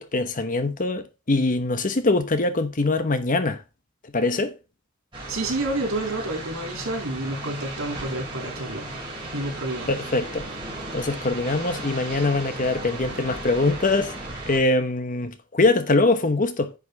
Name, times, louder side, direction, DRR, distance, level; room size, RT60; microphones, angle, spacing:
voice 1, 0.0-3.6 4.1-4.5 9.9-10.5 10.9-14.1 14.5-16.7, left 2 dB, 40° left, 1.0 m, -23 dB
sound 1, 5.1-14.6, right 2 dB, 25° right, 4.3 m, -35 dB
voice 2, 5.3-8.8 9.3-9.9, right 2 dB, 85° right, 3.5 m, -29 dB
9.9 x 5.5 x 4.0 m
head